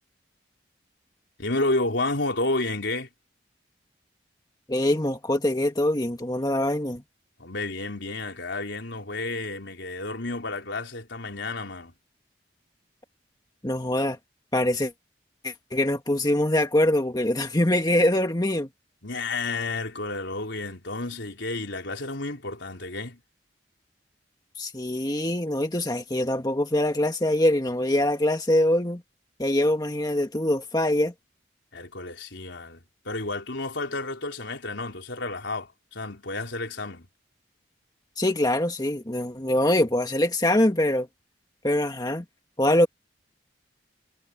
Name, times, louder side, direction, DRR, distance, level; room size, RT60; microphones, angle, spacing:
voice 1, 1.4-3.1 7.4-11.9 19.0-23.2 31.7-32.8 33.0-37.1, left 2 dB, 75° left, 3.9 m, -31 dB
voice 2, 4.7-7.0 13.6-14.2 14.5-14.9 15.4-18.7 24.6-29.0 29.4-31.1 38.2-41.1 41.6-42.3 42.6-42.9, left 1 dB, 20° left, 1.7 m, -23 dB
head